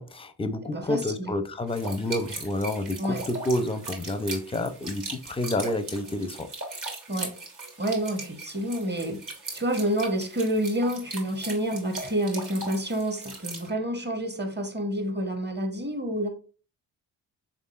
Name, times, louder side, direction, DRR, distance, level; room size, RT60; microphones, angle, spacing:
voice 1, 0.0-6.5, left 1 dB, 15° left, 0.5 m, -29 dB
voice 2, 0.7-1.3 3.0-3.2 7.1-7.3 7.8-9.2 9.5-16.3, right 1 dB, 25° right, 1.0 m, -28 dB
sound 1, 1.7-13.7, right 3 dB, 45° right, 1.5 m, -39 dB
3.7 x 3.6 x 2.4 m
supercardioid pair, 55°, 45 cm